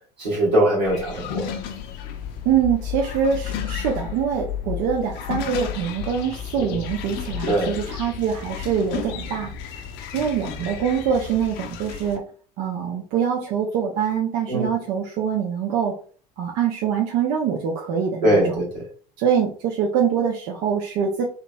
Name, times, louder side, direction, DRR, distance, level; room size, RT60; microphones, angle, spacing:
voice 1, 0.2-1.5 6.6-6.8 7.5-7.7 14.5-14.7 18.2-18.8, right 1 dB, 85° right, -4 dB, 1.7 m, -21 dB
sound 1, 0.8-12.2, left 8 dB, 55° left, 0.6 m, -33 dB
voice 2, 2.4-9.5 10.1-12.2 12.6-15.9 16.4-18.6 19.2-21.2, right 7 dB, 60° right, 0 dB, 0.7 m, -24 dB
3.7 x 2.9 x 2.3 m, 0.42 s
hypercardioid pair, 75°, 21 cm